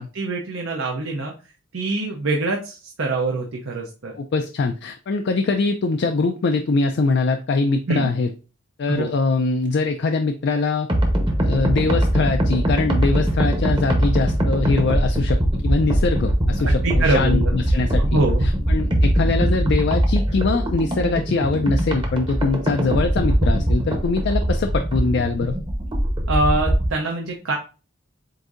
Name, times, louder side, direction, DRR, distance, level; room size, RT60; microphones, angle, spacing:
voice 1, 0.0-1.3 1.7-4.2 7.9-8.1 8.9-9.1 16.6-17.5 18.0-18.5 26.3-27.5, right 2 dB, 70° right, 1 dB, 0.7 m, -24 dB
voice 2, 4.2-8.3 8.8-10.9 11.4-18.0 18.4-25.6, left 3 dB, 55° left, 5 dB, 0.4 m, -22 dB
sound 1, 10.9-26.9, right 1 dB, 25° right, 0.8 m, -21 dB
7.8 x 2.7 x 2.5 m, 0.34 s
head